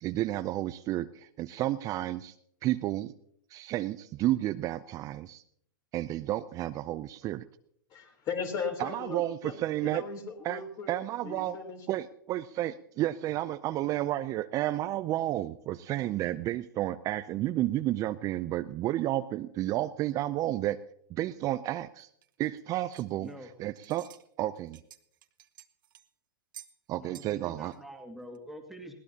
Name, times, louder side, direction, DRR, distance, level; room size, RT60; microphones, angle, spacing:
voice 1, 0.0-2.3 2.6-3.1 3.5-5.4 5.9-7.4 8.8-10.0 10.4-10.6 10.9-11.6 11.9-20.8 21.1-22.1 22.4-23.3 23.6-24.1 24.4-24.8 26.9-27.7, right 14 dB, 30° right, 12 dB, 0.5 m, -31 dB
voice 2, 7.9-9.5 9.8-10.9 11.2-11.9, left 5 dB, 35° left, 5 dB, 3.6 m, -37 dB
sound 1, 22.0-23.5 23.8-24.3 24.6-26.1 26.5-26.8 27.1-27.4 27.7-27.8 28.3-28.4, right 11 dB, 70° right, 1.1 m, -52 dB
voice 3, 23.2-23.5 27.0-29.0, right 1 dB, ahead, 2 dB, 2.2 m, -46 dB
20.5 x 18.0 x 2.9 m, 0.69 s
hypercardioid pair, 120°, 11 cm